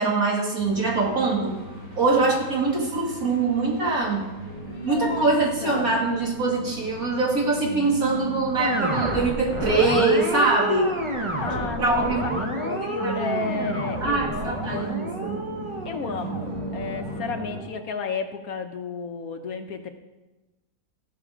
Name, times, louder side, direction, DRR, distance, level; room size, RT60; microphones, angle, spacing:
voice 1, 0.0-1.6 2.0-4.3 4.8-10.9 11.8-12.8 13.0-13.1 14.0-15.4, right 3 dB, 60° right, -2 dB, 2.4 m, -23 dB
sound 1, 0.6-17.6, right 2 dB, 80° right, 3.2 m, -36 dB
voice 2, 4.7-5.3 5.6-6.0 11.4-14.8 15.8-19.9, left 5 dB, 65° left, 7 dB, 1.1 m, -33 dB
sound 2, 8.6-17.9, right 1 dB, 25° right, 0.7 m, -31 dB
14.5 x 5.6 x 4.9 m, 1.1 s
omnidirectional pair, 1.7 m